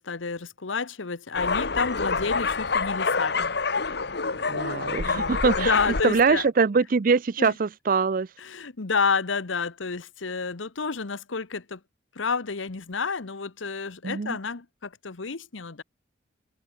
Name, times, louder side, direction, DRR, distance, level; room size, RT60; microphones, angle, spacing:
voice 1, 0.0-3.6 5.0-6.5 7.4-7.5 8.4-11.8 12.1-15.8, left 5 dB, 85° left, 1.1 m, -30 dB
sound 1, 1.3-6.5, left 4 dB, 60° left, 1.4 m, -27 dB
voice 2, 4.5-5.7 6.0-8.3 14.0-14.4, right 5 dB, 45° right, 0.5 m, -23 dB
head